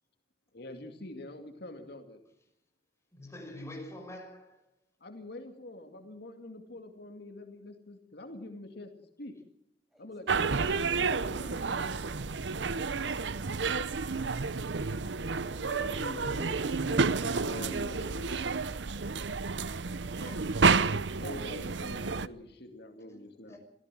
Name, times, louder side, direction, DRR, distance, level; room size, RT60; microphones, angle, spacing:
voice 1, 0.5-2.2 5.0-8.9 9.2-9.3 10.0-11.9 15.3-18.3 21.2-23.6, left 2 dB, 60° left, 5 dB, 2.3 m, -45 dB
voice 2, 3.1-4.6 20.1-20.5 21.1-21.2 23.1-23.2 23.5-23.6, left 1 dB, 15° left, 3 dB, 6.2 m, -45 dB
voice 3, 9.9-10.0, right 1 dB, ahead, 4 dB, 7.3 m, -59 dB
sound 1, 10.3-22.3, right 4 dB, 75° right, 0.8 m, -30 dB
26.0 x 15.5 x 7.7 m, 0.79 s
head